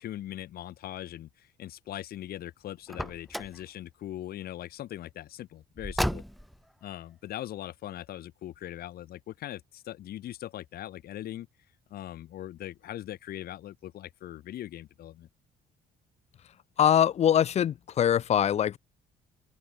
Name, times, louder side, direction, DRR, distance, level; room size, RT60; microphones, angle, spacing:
voice 1, 0.0-6.2 6.8-11.5 11.9-15.3, left 13 dB, 65° left, 2.0 m, -40 dB
Car, 2.9-3.6 5.8-6.6, equal, ahead, 1.3 m, -32 dB
voice 2, 16.8-18.8, left 10 dB, 40° left, 0.5 m, -23 dB
open air
cardioid pair, 110°, 17 cm